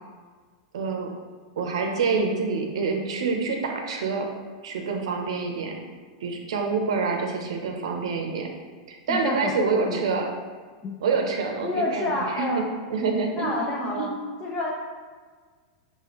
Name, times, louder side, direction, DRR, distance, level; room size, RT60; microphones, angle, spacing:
voice 1, 0.7-1.1 1.6-4.3 4.6-5.7 6.2-8.5 8.9-10.3 11.0-12.6 12.9-14.2, right 4 dB, 75° right, 2 dB, 0.6 m, -27 dB
voice 2, 9.1-10.2 10.8-10.9 11.6-12.7 13.4-14.1 14.4-14.7, left 2 dB, 30° left, -2 dB, 0.5 m, -29 dB
5.0 x 2.3 x 3.0 m, 1.5 s
hypercardioid pair, 105°, 3 cm